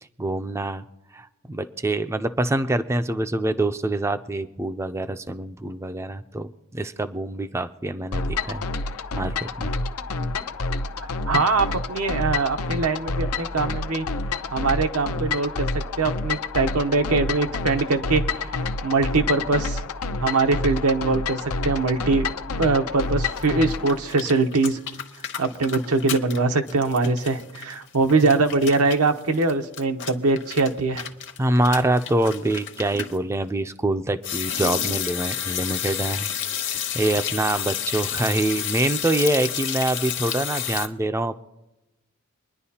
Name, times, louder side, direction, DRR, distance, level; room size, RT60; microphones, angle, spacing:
voice 1, 0.2-0.8 1.1-8.6 9.1-9.7 31.4-36.3 36.6-41.4, right 2 dB, 15° right, 9 dB, 0.4 m, -25 dB
sound 1, 8.1-24.0, left 3 dB, 85° left, 0.6 m, -28 dB
voice 2, 11.3-14.1 14.5-15.7 16.0-18.5 18.8-19.8 20.2-22.3 22.6-24.8 25.4-31.0, right 3 dB, 90° right, 6 dB, 0.9 m, -22 dB
sound 2, 23.4-23.5 23.7-26.4 26.7-33.2 34.2-40.9, left 9 dB, 60° left, 1.0 m, -30 dB
25.0 x 10.5 x 2.8 m, 0.95 s
head